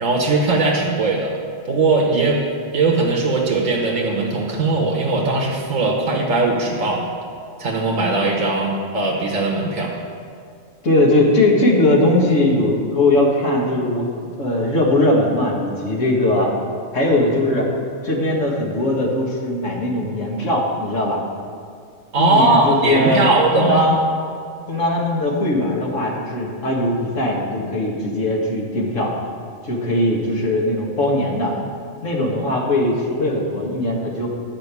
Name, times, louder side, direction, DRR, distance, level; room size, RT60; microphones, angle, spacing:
voice 1, 0.0-1.3 1.7-2.5 2.7-7.1 7.6-10.0 22.1-23.9, right 3 dB, 85° right, -1 dB, 1.6 m, -19 dB
voice 2, 10.8-16.5 16.9-17.7 18.0-21.2 22.2-24.0 24.7-29.1 29.6-31.5 32.0-34.3, left 1 dB, 70° left, -2 dB, 2.2 m, -19 dB
12.0 x 5.5 x 8.3 m, 2.3 s
omnidirectional pair, 1.3 m